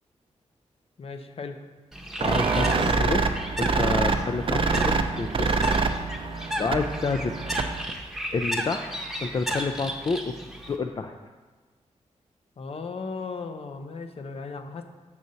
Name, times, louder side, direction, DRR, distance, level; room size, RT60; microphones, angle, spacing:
voice 1, 1.0-1.6 12.6-14.8, left 4 dB, 55° left, 7 dB, 0.7 m, -36 dB
Bird, 1.9-10.8, equal, ahead, 0.9 m, -35 dB
voice 2, 2.2-3.2 3.6-5.5 6.6-7.5 8.3-8.9 9.2-10.3 10.7-11.1, left 4 dB, 35° left, 5 dB, 0.4 m, -29 dB
sound 1, 2.2-7.9, right 4 dB, 50° right, 0.5 m, -25 dB
7.1 x 6.3 x 4.0 m, 1.3 s
wide cardioid pair, 100°, 12 cm